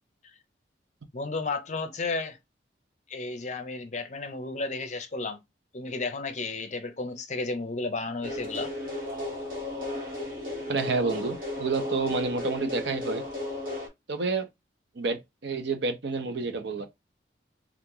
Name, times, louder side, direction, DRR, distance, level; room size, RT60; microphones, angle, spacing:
voice 1, 1.1-2.4 3.1-5.4 5.7-8.7, left 3 dB, 40° left, 0.6 m, -33 dB
sound 1, 8.2-13.9, left 2 dB, 50° right, 1.5 m, -34 dB
voice 2, 10.7-13.2 14.1-14.5 15.0-16.9, right 4 dB, 70° right, 0.6 m, -29 dB
2.9 x 2.4 x 3.7 m
head